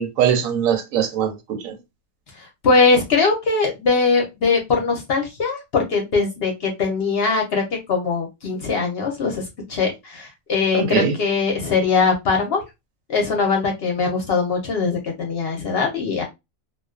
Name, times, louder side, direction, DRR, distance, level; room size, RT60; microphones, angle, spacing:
voice 1, 0.0-1.7 10.7-11.1, right 8 dB, 80° right, 1.0 m, -21 dB
voice 2, 2.6-7.6 7.9-9.4 9.7-12.6 13.1-16.2, left 4 dB, 55° left, 0.7 m, -21 dB
2.4 x 2.2 x 2.3 m
omnidirectional pair, 1.4 m